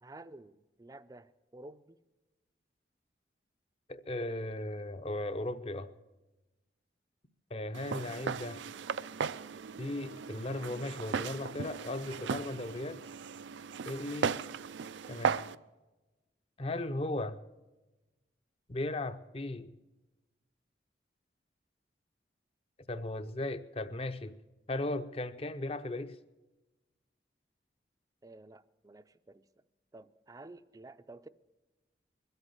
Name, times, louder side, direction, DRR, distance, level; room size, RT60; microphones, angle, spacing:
voice 1, 0.0-2.0 28.2-29.5 29.9-31.3, right 2 dB, 20° right, 14 dB, 0.4 m, -52 dB
voice 2, 3.9-5.9 7.5-8.6 9.8-13.0 13.8-14.4 15.1-15.4 16.6-17.4 18.7-19.7 22.9-24.4 24.7-26.2, left 2 dB, 30° left, 12 dB, 0.6 m, -37 dB
Walk footsteps, 7.7-15.5, right 6 dB, 85° right, 0.4 m, -37 dB
22.0 x 8.1 x 7.0 m, 1.1 s
head